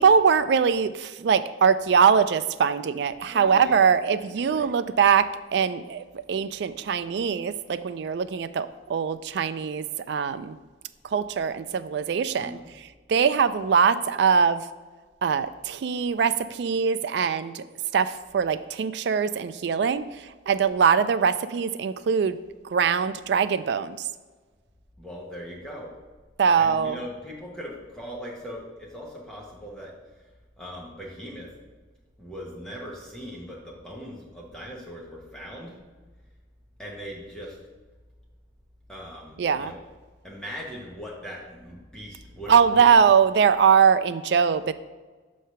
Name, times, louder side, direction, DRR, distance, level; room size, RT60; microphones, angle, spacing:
voice 1, 0.0-10.6 11.1-12.6 13.1-14.6 15.2-17.6 17.9-20.1 20.5-22.4 22.7-24.0 26.4-27.0 39.4-39.7 42.5-44.7, right 6 dB, 60° right, 13 dB, 0.3 m, -22 dB
voice 2, 3.3-3.9 4.3-4.7 12.4-12.7 25.0-25.9 26.6-29.9 30.6-31.5 32.2-35.8 36.8-37.6 38.9-39.8 40.2-43.0, equal, 5° left, -4 dB, 1.0 m, -40 dB
6.6 x 3.2 x 5.6 m, 1.3 s
head